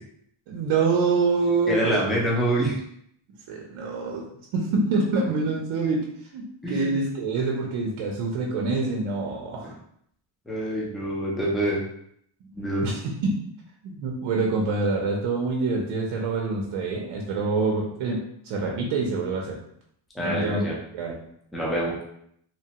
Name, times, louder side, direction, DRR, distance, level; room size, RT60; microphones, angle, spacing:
voice 1, 0.5-2.1 3.5-4.3 4.5-6.0 6.3-9.7 12.8-13.3 13.8-19.6 20.2-20.7 20.9-21.2, right 3 dB, 70° right, 0 dB, 0.7 m, -26 dB
voice 2, 1.7-2.8 6.6-6.9 10.5-11.8 12.5-12.8 20.1-20.8 21.5-22.0, right 1 dB, ahead, -5 dB, 0.5 m, -26 dB
3.0 x 2.2 x 2.8 m, 0.70 s
cardioid pair, 135°, 49 cm